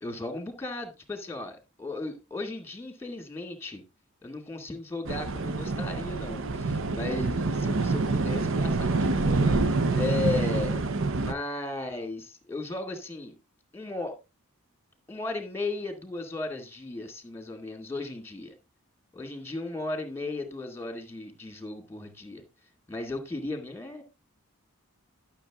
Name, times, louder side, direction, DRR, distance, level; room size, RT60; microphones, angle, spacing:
voice 1, 0.0-3.8 4.2-10.8 11.2-13.3 13.7-14.1 15.1-18.5 19.1-22.4 22.9-24.0, left 2 dB, 10° left, 2.3 m, -36 dB
sound 1, 5.0-11.3, right 3 dB, 60° right, 0.8 m, -26 dB
12.0 x 6.7 x 3.7 m
head